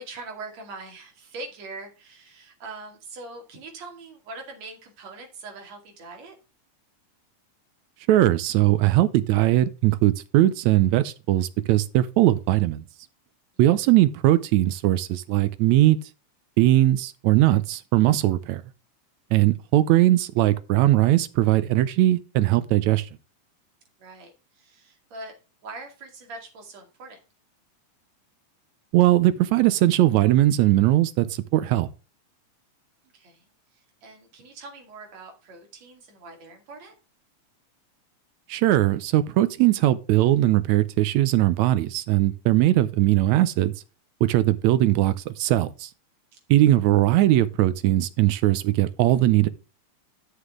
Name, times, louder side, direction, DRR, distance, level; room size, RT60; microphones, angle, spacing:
voice 1, 0.0-6.4 24.0-25.3 25.6-27.2 33.1-37.0 46.3-46.4, right 3 dB, 60° right, 3.5 m, -42 dB
voice 2, 8.1-12.8 13.6-16.0 16.6-18.6 19.3-23.1 28.9-31.9 38.5-43.7 44.2-45.9 46.5-49.5, right 15 dB, 80° right, 1.8 m, -20 dB
11.0 x 6.6 x 3.6 m
omnidirectional pair, 3.5 m